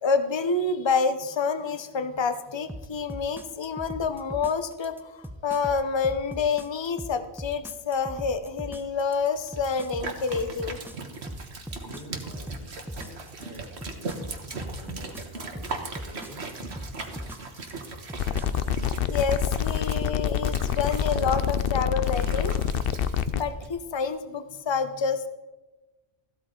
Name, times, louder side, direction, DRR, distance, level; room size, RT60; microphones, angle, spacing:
voice 1, 0.0-10.8 19.1-22.5 23.3-25.3, left 5 dB, 30° left, 10 dB, 0.8 m, -28 dB
sound 1, 2.7-18.5, equal, 5° right, 0.4 m, -39 dB
sound 2, 9.4-23.7, right 3 dB, 75° right, 1.6 m, -39 dB
voice 2, 11.7-16.5, equal, 80° left, -3 dB, 5.0 m, -47 dB
sound 3, 18.2-23.4, left 8 dB, 65° left, 0.8 m, -26 dB
15.0 x 12.5 x 3.8 m, 1.1 s
omnidirectional pair, 1.1 m